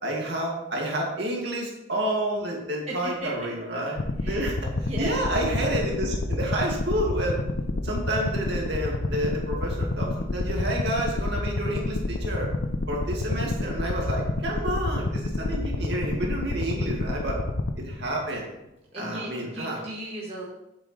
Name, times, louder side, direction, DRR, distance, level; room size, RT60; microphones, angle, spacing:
voice 1, 0.0-4.0 4.3-7.4 7.8-12.5 12.9-17.4 17.8-18.4 18.9-19.8, right 1 dB, 60° right, -2 dB, 2.4 m, -29 dB
voice 2, 2.9-3.3 4.2-4.4 4.8-5.3 18.9-20.5, right 1 dB, 30° right, -5 dB, 1.5 m, -35 dB
sound 1, 4.0-18.4, left 2 dB, 75° left, 0.6 m, -29 dB
9.0 x 7.8 x 3.3 m, 0.90 s
head